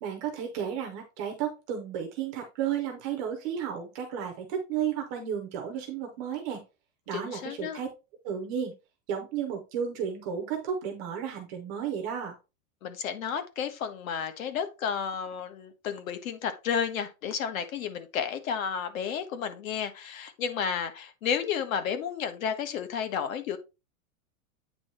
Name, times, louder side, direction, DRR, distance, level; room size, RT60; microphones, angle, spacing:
voice 1, 0.0-6.6 7.1-7.9 8.2-8.7 9.1-12.4, right 8 dB, 15° right, 0.4 m, -33 dB
voice 2, 7.1-7.8 12.8-23.6, left 7 dB, 85° left, 1.5 m, -32 dB
8.8 x 3.0 x 4.3 m
supercardioid pair, 180°, 40 cm